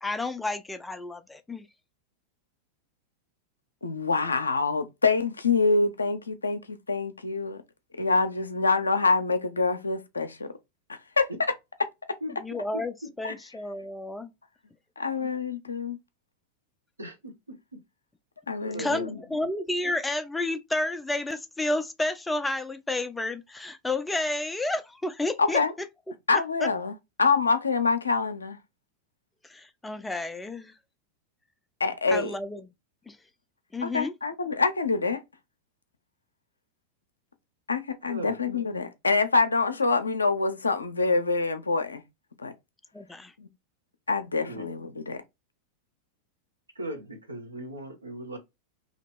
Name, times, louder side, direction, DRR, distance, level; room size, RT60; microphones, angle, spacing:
voice 1, 0.0-1.7 12.4-14.3 18.8-25.6 26.3-26.7 29.5-30.7 32.1-32.6 33.1-33.2 33.7-34.1 42.9-43.3, left 2 dB, 10° left, 0.4 m, -31 dB
voice 2, 3.8-7.6 8.0-10.5 10.9-11.3 13.2-13.3 15.0-16.0 18.5-19.2 25.4-25.7 26.3-28.6 31.8-32.3 33.8-35.2 37.7-42.0 42.4-42.5 43.4-43.5 44.1-45.2, left 4 dB, 75° left, 0.6 m, -26 dB
voice 3, 17.0-17.6 18.6-19.1 32.1-32.4 38.1-38.4 39.5-39.8 44.4-44.8 46.7-48.4, right 1 dB, 80° right, 1.0 m, -38 dB
2.9 x 2.9 x 4.4 m
figure-of-eight pair, 90°, 0 cm